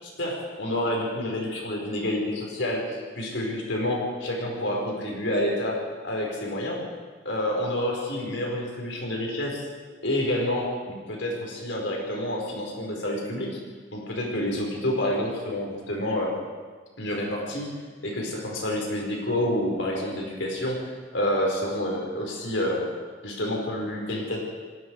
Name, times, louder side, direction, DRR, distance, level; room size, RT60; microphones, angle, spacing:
voice 1, 0.0-6.8 7.2-9.6 10.0-13.6 13.9-16.3 17.0-17.7 18.0-22.8 23.2-24.4, left 1 dB, 65° left, -1 dB, 5.1 m, -28 dB
28.5 x 18.5 x 4.9 m, 1.5 s
head